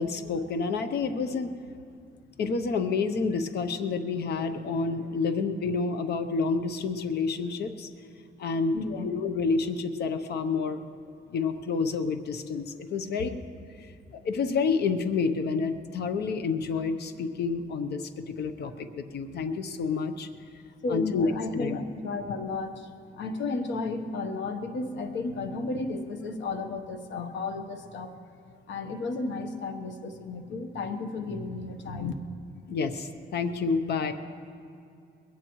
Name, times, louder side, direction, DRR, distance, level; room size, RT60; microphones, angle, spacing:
voice 1, 0.0-1.5 2.4-7.9 8.4-8.8 9.0-10.8 11.3-13.4 13.8-20.3 20.9-21.8 32.7-34.1, left 4 dB, 65° left, 9 dB, 0.8 m, -29 dB
voice 2, 8.7-9.1 20.8-28.2 28.7-32.1, left 3 dB, 85° left, 7 dB, 1.1 m, -33 dB
21.5 x 17.0 x 3.1 m, 2.5 s
cardioid pair, 150°, 19 cm